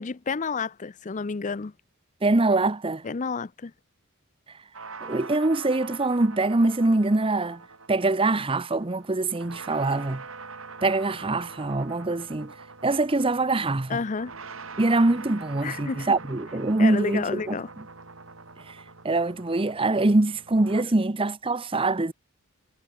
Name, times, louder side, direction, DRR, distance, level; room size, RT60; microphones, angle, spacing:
voice 1, 0.0-1.7 3.0-3.7 13.9-14.3 15.6-16.1 16.8-17.7, left 4 dB, 35° left, 0.5 m, -30 dB
voice 2, 2.2-3.0 5.0-7.6 7.9-10.2 10.8-12.5 12.8-14.0 14.8-17.6 18.6-22.1, right 2 dB, 25° right, 0.7 m, -24 dB
sound 1, 4.7-20.8, right 4 dB, 60° right, 3.2 m, -44 dB
head